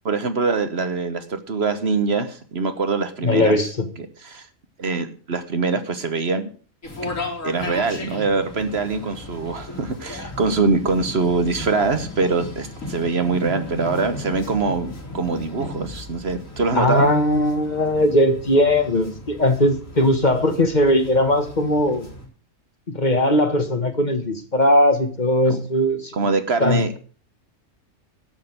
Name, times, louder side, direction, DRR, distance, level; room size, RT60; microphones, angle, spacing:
voice 1, 0.0-3.6 4.0-4.5 4.8-6.5 7.0-7.1 7.4-17.1 25.5-25.6 26.1-27.0, right 4 dB, 55° right, 9 dB, 1.4 m, -23 dB
voice 2, 3.2-3.8 16.7-22.1 22.9-26.3 26.6-27.0, left 1 dB, 35° left, 7 dB, 1.6 m, -19 dB
sound 1, 6.8-22.3, left 2 dB, 85° left, 4.6 m, -36 dB
12.0 x 6.6 x 7.9 m, 0.41 s
omnidirectional pair, 1.3 m